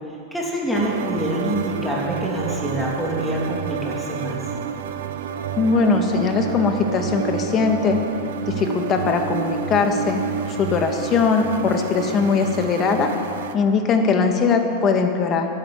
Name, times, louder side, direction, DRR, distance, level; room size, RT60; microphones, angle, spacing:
voice 1, 0.3-4.4, right 1 dB, ahead, -4 dB, 2.9 m, -25 dB
sound 1, 0.7-13.5, right 8 dB, 80° right, 0.9 m, -29 dB
voice 2, 5.6-8.0 8.5-10.2 10.6-13.1 13.5-15.5, left 5 dB, 30° left, 4 dB, 1.7 m, -20 dB
13.0 x 11.5 x 8.9 m, 2.6 s
supercardioid pair, 145°, 0 cm